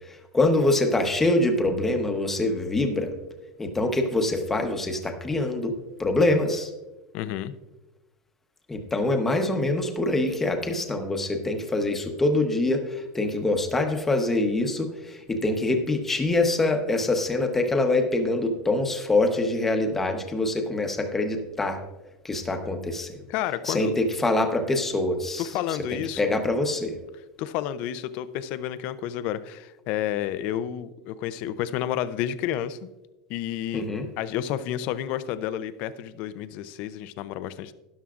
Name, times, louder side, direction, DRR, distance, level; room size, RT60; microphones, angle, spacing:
voice 1, 0.1-3.1 3.6-5.7 6.0-6.7 8.7-21.8 22.2-23.2 23.7-25.5 25.9-27.0 33.7-34.1, left 2 dB, 10° left, 5 dB, 0.9 m, -25 dB
voice 2, 7.1-7.5 23.3-24.0 25.4-26.2 27.4-32.8 33.3-33.9 34.2-37.7, left 11 dB, 45° left, 14 dB, 0.5 m, -30 dB
13.0 x 11.0 x 2.5 m, 1.1 s
supercardioid pair, 165°, 3 cm